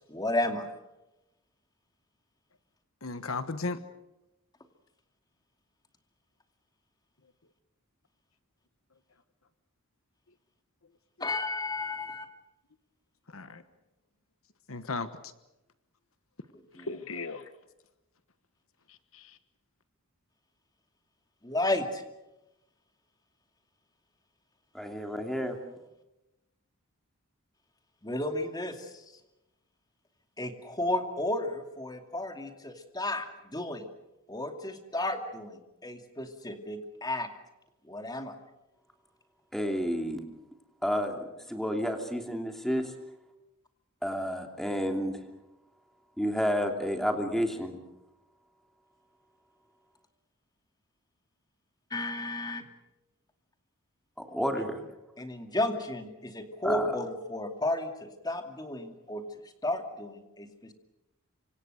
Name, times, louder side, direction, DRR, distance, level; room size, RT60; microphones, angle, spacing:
voice 1, 0.1-0.7 11.2-12.3 16.7-17.0 21.4-22.0 28.0-29.0 30.4-33.8 34.3-37.3 37.9-38.3 51.9-52.6 55.2-59.2 59.6-60.7, left 1 dB, 20° left, 6 dB, 2.5 m, -33 dB
voice 2, 3.0-3.8 13.3-13.6 14.7-15.1 16.9-17.5 19.1-19.3, left 3 dB, 70° left, 11 dB, 1.3 m, -35 dB
voice 3, 24.7-25.6 39.5-40.2 40.8-42.9 44.0-45.2 46.2-47.8 54.2-54.8 56.6-57.0, equal, ahead, 4 dB, 2.9 m, -30 dB
27.0 x 25.0 x 6.6 m, 0.95 s
head